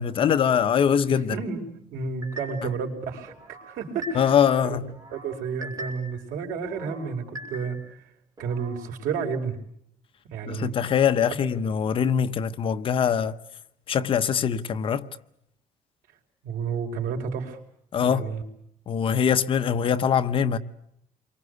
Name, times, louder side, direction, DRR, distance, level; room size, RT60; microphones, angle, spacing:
voice 1, 0.0-1.3 2.6-2.7 4.1-4.9 10.4-13.3 13.9-15.1 17.9-18.3 18.9-20.6, left 8 dB, 40° left, 1.0 m, -23 dB
voice 2, 1.3-1.6 1.9-4.3 4.6-4.8 5.1-7.8 8.4-9.6 10.3-10.7 16.4-17.6 18.0-18.4, right 5 dB, 80° right, 5.1 m, -31 dB
sound 1, 2.2-2.8 3.3-4.5 4.9-6.2 6.6-8.0 8.4-8.9, right 1 dB, 25° right, 6.4 m, -41 dB
29.0 x 24.0 x 8.1 m
cardioid pair, 155°, 14 cm